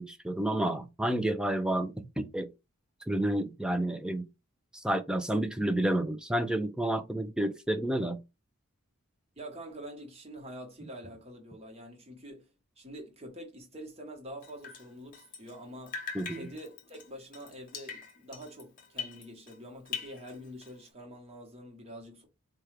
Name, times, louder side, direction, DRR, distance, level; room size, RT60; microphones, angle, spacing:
voice 1, 0.0-2.5 3.1-4.2 4.7-8.2 16.1-16.5, right 1 dB, 5° right, 0.3 m, -30 dB
voice 2, 9.4-16.0 16.3-22.3, equal, 25° right, 1.1 m, -46 dB
Drip, 14.4-15.6 15.9-19.6 19.9-20.9, left 6 dB, 35° left, 0.8 m, -43 dB
4.6 x 2.3 x 3.2 m
head